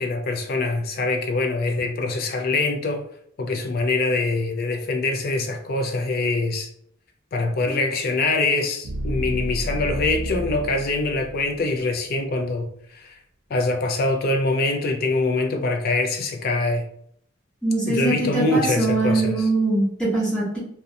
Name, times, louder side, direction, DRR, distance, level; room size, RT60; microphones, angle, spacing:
voice 1, 0.0-3.0 3.4-6.7 7.3-12.7 12.9-13.1 13.5-16.9 17.9-19.5, left 2 dB, 50° left, 0.4 m, -24 dB
sound 1, 7.7-11.7, right 1 dB, 75° right, 0.5 m, -31 dB
voice 2, 17.6-20.6, right 2 dB, 5° left, 0.9 m, -22 dB
2.4 x 2.1 x 2.8 m
head